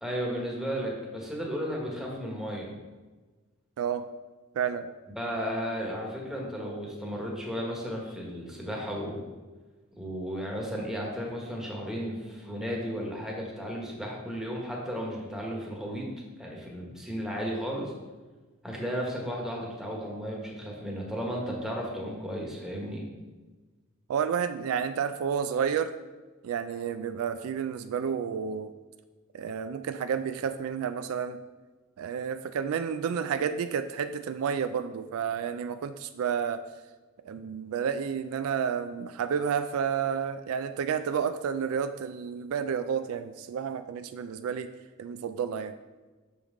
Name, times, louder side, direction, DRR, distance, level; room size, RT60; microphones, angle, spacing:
voice 1, 0.0-2.7 5.2-9.2 10.0-16.1 16.4-17.9 18.6-23.0, equal, 5° right, -2 dB, 1.2 m, -34 dB
voice 2, 3.8-4.1 4.5-4.9 24.1-26.0 26.4-28.7 29.3-31.4 32.0-36.6 37.2-44.7 45.0-45.7, right 7 dB, 70° right, 10 dB, 0.3 m, -30 dB
6.2 x 5.4 x 3.7 m, 1.3 s
head